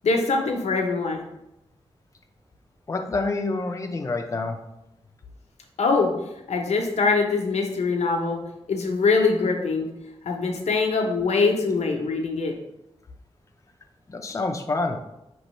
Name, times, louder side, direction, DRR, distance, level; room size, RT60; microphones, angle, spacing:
voice 1, 0.0-1.2 5.8-6.1 6.5-8.4 8.7-9.9 10.2-12.6, left 4 dB, 90° left, 2 dB, 0.7 m, -23 dB
voice 2, 2.9-4.6 14.1-15.0, left 3 dB, 30° left, 5 dB, 0.4 m, -27 dB
5.3 x 3.0 x 3.1 m, 0.86 s
wide cardioid pair, 170°, 11 cm